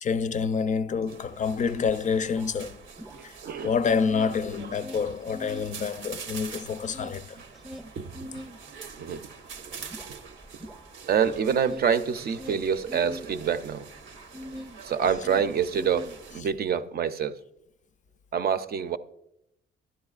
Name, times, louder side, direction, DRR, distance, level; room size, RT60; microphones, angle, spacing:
voice 1, 0.0-2.8 3.2-3.3 3.6-7.4, left 5 dB, 40° left, 0.4 m, -27 dB
Ale hop shop, 1.1-16.4, right 6 dB, 80° right, 0.8 m, -45 dB
sound 1, 1.6-3.6 3.9-5.7 6.1-14.8 15.0-16.6, equal, ahead, 0.6 m, -43 dB
voice 2, 3.1-3.7 8.0-8.1 9.0-9.3 9.6-9.8 10.1-10.2 11.0-13.9 14.8-17.4 18.3-19.0, right 7 dB, 50° right, 0.6 m, -27 dB
12.5 x 10.5 x 2.4 m
cardioid pair, 90°, 20 cm